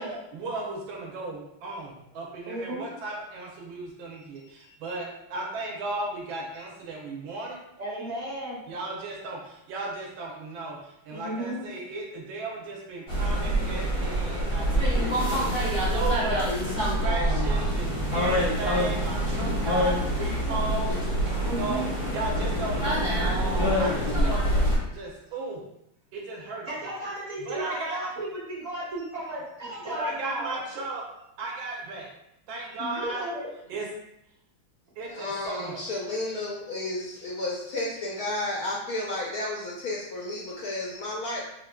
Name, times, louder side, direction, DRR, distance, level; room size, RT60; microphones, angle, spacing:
voice 1, 0.3-7.6 8.7-10.8 11.0-15.3 15.9-21.8 22.1-23.0 23.8-24.4 24.9-25.6 26.1-26.7 27.4-28.0 29.8-31.0 31.4-32.1 32.5-33.2 33.7-33.8 35.0-35.8, right 2 dB, 75° right, -1 dB, 1.4 m, -35 dB
voice 2, 2.4-2.8 4.4-5.0 6.6-6.7 7.8-8.6 11.1-11.6 21.4-21.9 26.6-30.6 32.6-33.5, right 1 dB, 30° right, -8 dB, 0.7 m, -35 dB
sound 1, 13.1-24.8, equal, 35° left, 0.4 m, -25 dB
voice 3, 35.1-41.4, left 2 dB, 80° left, -4 dB, 0.8 m, -32 dB
4.8 x 2.5 x 2.2 m, 0.81 s
omnidirectional pair, 2.3 m